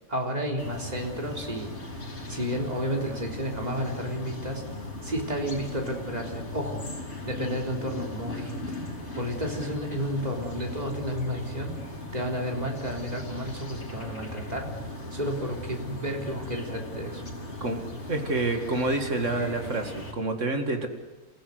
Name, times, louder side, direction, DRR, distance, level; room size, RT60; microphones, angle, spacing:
voice 1, 0.1-2.0 2.3-4.7 5.0-6.9 7.2-8.8 9.2-11.8 12.1-14.7 15.1-17.2, equal, 25° right, 0 dB, 3.9 m, -32 dB
sound 1, 0.6-20.1, left 1 dB, 45° left, 3.9 m, -38 dB
voice 2, 18.1-20.9, right 2 dB, 55° right, 5 dB, 2.5 m, -28 dB
29.5 x 16.0 x 8.0 m, 1.2 s
omnidirectional pair, 1.6 m